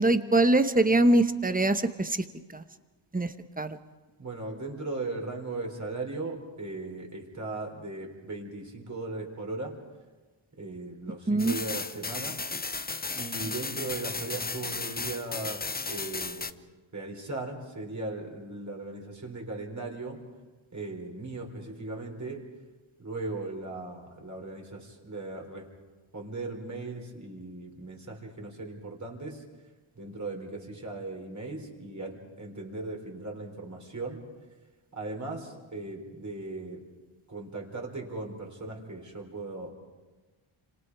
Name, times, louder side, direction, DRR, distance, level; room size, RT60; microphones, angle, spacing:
voice 1, 0.0-2.2 2.5-2.6 3.1-3.8 11.3-11.5, right 2 dB, 15° right, 10 dB, 1.2 m, -23 dB
voice 2, 4.2-9.8 10.6-12.4 13.1-16.5 16.9-20.2 20.7-22.5 23.0-25.7 26.1-29.4 30.0-34.2 34.9-36.9 37.3-39.7, right 2 dB, 35° right, 1 dB, 4.1 m, -38 dB
sound 1, 11.4-16.5, left 4 dB, 20° left, 0.7 m, -35 dB
30.0 x 26.5 x 4.8 m, 1.2 s
wide cardioid pair, 95°, 50 cm